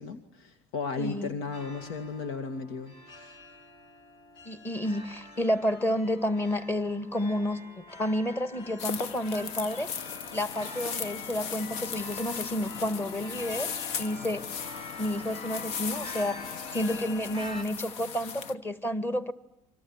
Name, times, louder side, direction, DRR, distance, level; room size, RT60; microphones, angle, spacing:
voice 1, 0.0-3.4, left 4 dB, 85° left, 2.2 m, -35 dB
voice 2, 1.0-1.3 4.4-9.9 10.3-13.7 14.0-14.4 15.0-19.3, left 1 dB, 20° left, 1.7 m, -30 dB
sound 1, 1.5-17.6, left 3 dB, 50° left, 4.0 m, -45 dB
sound 2, 8.8-18.5, left 7 dB, 65° left, 1.3 m, -38 dB
29.0 x 25.5 x 7.2 m
cardioid pair, 140°, 12 cm